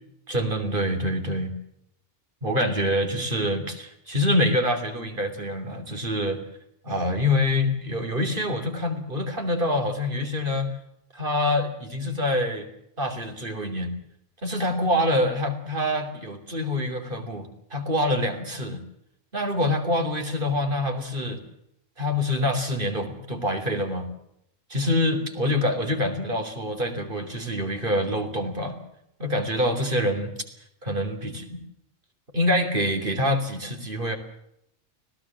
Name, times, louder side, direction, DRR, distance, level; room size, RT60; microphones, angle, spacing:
voice 1, 0.3-1.5 2.4-6.4 6.8-10.7 11.1-12.7 13.0-13.9 14.4-18.8 19.3-21.4 22.0-24.1 24.7-28.8 29.2-30.3 30.8-31.6 32.3-34.2, left 1 dB, 40° right, 6 dB, 3.5 m, -26 dB
25.0 x 18.0 x 7.6 m, 0.76 s
omnidirectional pair, 1.3 m